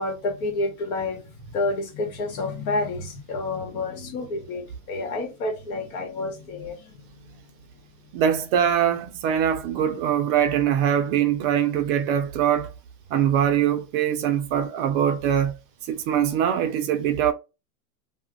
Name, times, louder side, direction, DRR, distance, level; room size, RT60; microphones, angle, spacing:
voice 1, 0.0-7.0 7.7-7.8, left 2 dB, 65° left, 1.2 m, -29 dB
voice 2, 8.1-12.7 13.1-15.5 15.9-17.3, right 9 dB, 40° right, 0.4 m, -22 dB
2.3 x 2.1 x 3.7 m
supercardioid pair, 130°, 45 cm